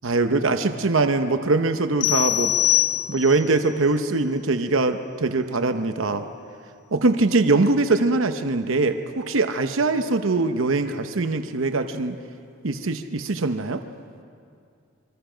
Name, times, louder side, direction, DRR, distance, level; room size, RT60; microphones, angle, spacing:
voice 1, 0.0-2.8 3.1-6.3 6.9-12.2 12.6-13.8, right 3 dB, 75° right, 8 dB, 0.9 m, -22 dB
sound 1, 2.0-3.5, left 14 dB, 50° left, 1.1 m, -22 dB
26.0 x 24.0 x 5.1 m, 2.4 s
head